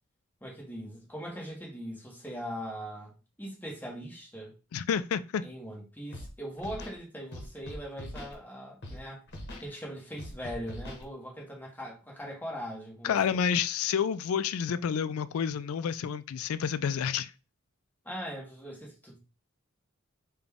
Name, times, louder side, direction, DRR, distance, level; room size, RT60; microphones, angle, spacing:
voice 1, 0.4-3.1 3.4-4.5 5.4-9.2 9.6-13.4 18.0-19.2, equal, 10° left, 1.1 m, -40 dB
voice 2, 4.7-5.4 13.0-17.3, left 7 dB, 90° left, 0.3 m, -29 dB
Scratching (performance technique), 6.1-6.3 6.6-7.0 7.3-8.3 8.8-9.0 9.3-9.7 10.2-11.0, left 1 dB, 50° left, 1.0 m, -42 dB
3.9 x 2.2 x 3.5 m
head